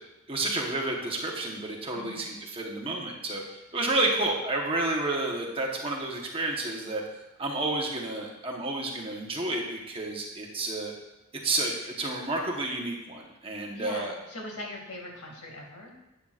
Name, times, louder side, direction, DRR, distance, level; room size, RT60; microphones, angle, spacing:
voice 1, 0.3-7.0 7.4-10.9 11.3-14.2, right 2 dB, 25° right, 0 dB, 1.1 m, -30 dB
voice 2, 13.7-15.9, left 2 dB, 85° left, 0 dB, 2.3 m, -40 dB
11.5 x 9.1 x 2.5 m, 0.97 s
head